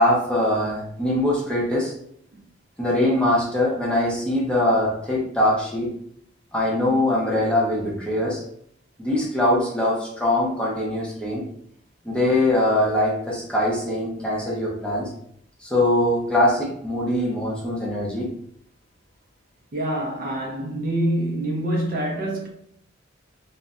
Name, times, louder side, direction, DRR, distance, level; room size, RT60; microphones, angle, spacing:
voice 1, 0.0-1.9 2.8-5.9 6.5-8.4 9.0-11.4 12.0-15.1 15.6-18.3, left 1 dB, 5° left, 0.5 m, -22 dB
voice 2, 19.7-22.5, right 1 dB, 45° right, 0.4 m, -25 dB
2.6 x 2.1 x 2.3 m
head